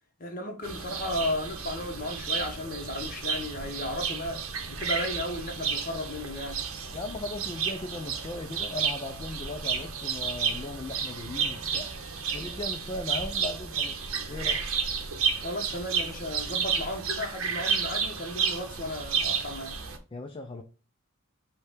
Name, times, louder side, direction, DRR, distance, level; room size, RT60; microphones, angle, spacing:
voice 1, 0.2-6.6 15.4-19.8, left 1 dB, 40° left, 0.9 m, -34 dB
sound 1, 0.6-20.0, right 6 dB, 75° right, 0.7 m, -32 dB
voice 2, 6.9-11.9 12.3-14.6 20.1-20.6, left 2 dB, 25° left, 0.3 m, -37 dB
4.6 x 2.2 x 4.8 m
head